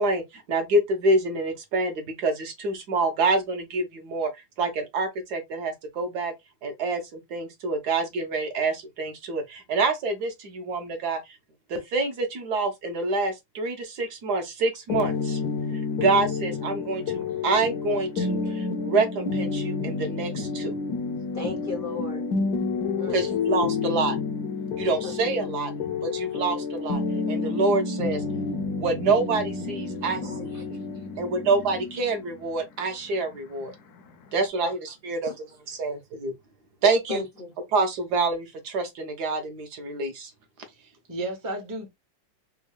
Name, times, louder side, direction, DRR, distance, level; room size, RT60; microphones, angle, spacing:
voice 1, 0.0-4.3 4.6-6.3 6.6-11.2 11.7-15.4 15.9-20.7 23.1-24.2 24.8-25.7 26.0-27.0 27.3-28.2 28.8-30.5 31.2-33.7 34.3-36.3 36.8-37.3 37.7-40.3, right 3 dB, 65° right, 1.2 m, -27 dB
sound 1, 14.9-34.5, left 4 dB, 70° left, 1.0 m, -30 dB
voice 2, 21.3-22.2 22.9-23.2 25.0-25.1 30.2-30.7 34.6-34.7 35.2-35.3 37.1-37.6, left 3 dB, 55° left, 0.6 m, -35 dB
voice 3, 40.8-41.9, right 1 dB, 25° right, 0.4 m, -33 dB
3.5 x 2.2 x 3.1 m
omnidirectional pair, 2.1 m